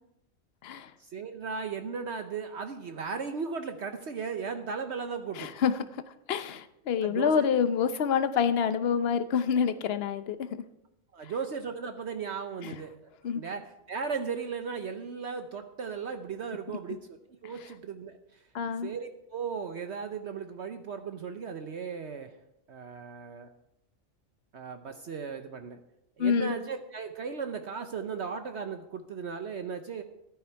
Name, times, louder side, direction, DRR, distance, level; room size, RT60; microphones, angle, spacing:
voice 1, 1.0-5.6 7.0-7.3 11.1-12.9 13.3-17.2 17.4-18.4 18.8-22.3 22.7-23.5 24.5-25.8 26.2-30.0, right 5 dB, 60° right, 7 dB, 1.0 m, -36 dB
voice 2, 5.4-6.0 6.3-10.6 11.2-11.3 13.2-13.4 18.5-18.9 26.2-26.6, left 7 dB, 55° left, 11 dB, 0.9 m, -27 dB
14.5 x 12.0 x 4.6 m, 0.84 s
omnidirectional pair, 1.4 m